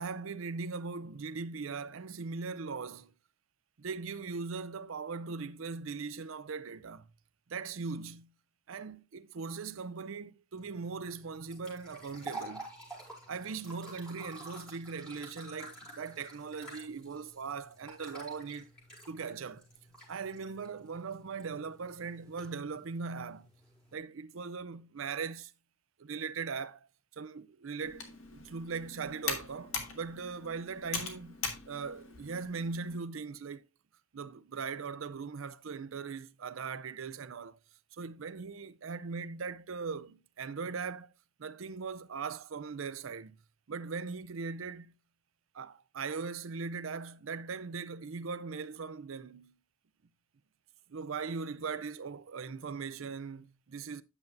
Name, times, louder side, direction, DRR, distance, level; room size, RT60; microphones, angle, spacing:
voice 1, 0.0-3.1 3.8-7.1 7.5-8.3 8.7-12.7 13.3-18.7 19.1-19.7 20.1-23.5 23.9-25.5 26.0-26.9 27.1-33.7 34.1-37.6 38.0-41.1 41.4-43.4 43.7-44.9 45.5-49.5 50.9-54.0, right 5 dB, 75° right, 0.5 m, -40 dB
sound 1, 10.6-23.9, right 2 dB, 5° left, 5.3 m, -50 dB
Computer keyboard, 27.8-33.0, left 5 dB, 85° left, 1.9 m, -41 dB
9.9 x 7.1 x 2.6 m
head